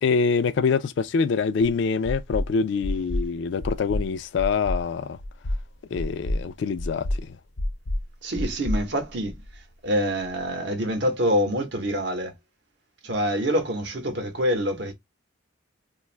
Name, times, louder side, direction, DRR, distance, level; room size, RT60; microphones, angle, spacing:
voice 1, 0.0-5.2 5.9-7.4, left 5 dB, 60° left, 0.3 m, -25 dB
sound 1, 1.6-1.7 2.0-2.5 2.8-3.3 3.6-4.1 4.4-4.8 5.2-5.6 6.0-6.4 6.8-7.2 7.6-8.0 8.3-9.6, left 1 dB, 80° left, 0.7 m, -28 dB
voice 2, 8.2-9.4 9.8-12.3 13.0-14.9, equal, 60° right, 0.8 m, -26 dB
2.5 x 2.3 x 3.1 m
head